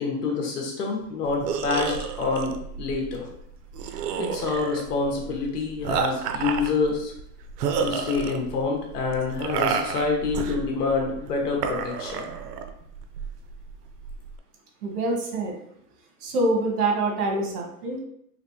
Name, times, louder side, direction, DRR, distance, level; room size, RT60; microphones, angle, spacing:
voice 1, 0.0-3.3 4.2-7.1 7.8-12.2, left 4 dB, 75° left, 0 dB, 1.4 m, -27 dB
Man in some light pain, 1.2-14.4, right 6 dB, 85° right, 0.6 m, -31 dB
voice 2, 14.8-15.5 16.2-18.0, right 2 dB, 65° right, 1 dB, 1.2 m, -25 dB
3.3 x 3.0 x 2.7 m, 0.72 s
hypercardioid pair, 140°, 47 cm